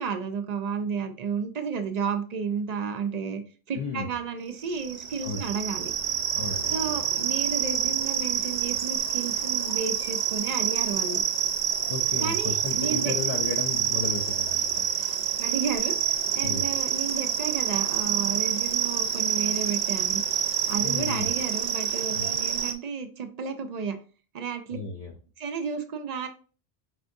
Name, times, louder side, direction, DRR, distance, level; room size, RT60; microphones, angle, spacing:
voice 1, 0.0-3.4 3.7-5.9 6.7-11.2 12.2-13.1 15.4-16.0 16.3-20.2 20.7-24.0 24.3-24.8 25.4-26.3, right 5 dB, 55° right, 7 dB, 0.4 m, -32 dB
voice 2, 3.7-4.1 5.2-5.5 6.3-7.0 11.9-14.8 16.4-16.7 20.8-21.3 22.2-22.3 24.7-25.1, left 4 dB, 50° left, 2 dB, 0.4 m, -34 dB
sound 1, 4.6-22.7, right 8 dB, 75° right, 0.8 m, -27 dB
5.1 x 3.4 x 2.6 m, 0.38 s
omnidirectional pair, 1.1 m